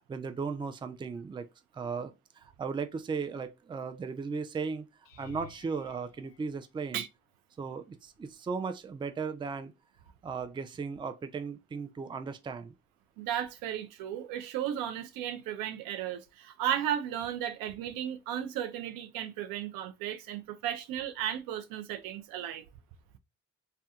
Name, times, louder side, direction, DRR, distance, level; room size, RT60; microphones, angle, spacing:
voice 1, 0.0-1.5 1.7-4.9 5.2-7.0 7.6-9.7 10.2-12.7, right 5 dB, 15° right, 0.4 m, -36 dB
sound 1, 5.0-7.3 8.0-8.5 8.8-9.0 13.3-13.4, left 12 dB, 70° left, 0.5 m, -55 dB
voice 2, 13.2-22.6, right 10 dB, 75° right, 0.5 m, -35 dB
2.6 x 2.2 x 2.3 m
hypercardioid pair, 50°, 34 cm